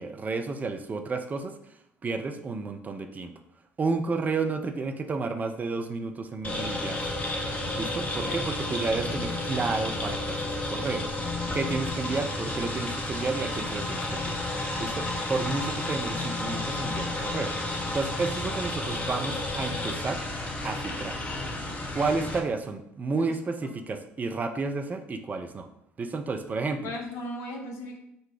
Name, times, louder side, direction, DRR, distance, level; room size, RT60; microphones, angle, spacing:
voice 1, 0.0-1.5 2.0-3.3 3.8-7.1 7.8-11.0 11.5-14.4 14.8-17.5 17.9-20.2 20.6-21.2 21.9-25.7 26.0-26.9, right 4 dB, 25° right, 6 dB, 0.5 m, -31 dB
sound 1, 6.4-22.4, left 2 dB, 20° left, 0.9 m, -31 dB
voice 2, 26.8-28.0, left 1 dB, 50° left, 1 dB, 0.9 m, -37 dB
3.9 x 2.2 x 4.5 m, 0.82 s
figure-of-eight pair, 55°, 6 cm